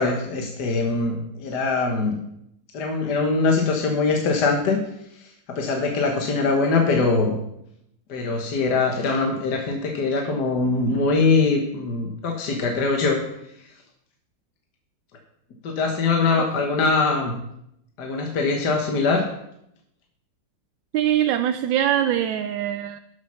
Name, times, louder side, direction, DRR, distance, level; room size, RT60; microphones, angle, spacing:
voice 1, 0.0-2.2 2.7-4.8 5.5-7.4 8.1-13.2 15.6-17.4 18.0-19.2, left 3 dB, 60° left, 1 dB, 1.8 m, -22 dB
voice 2, 20.9-23.0, right 11 dB, 80° right, 9 dB, 1.3 m, -22 dB
12.0 x 6.6 x 5.7 m, 0.77 s
omnidirectional pair, 2.1 m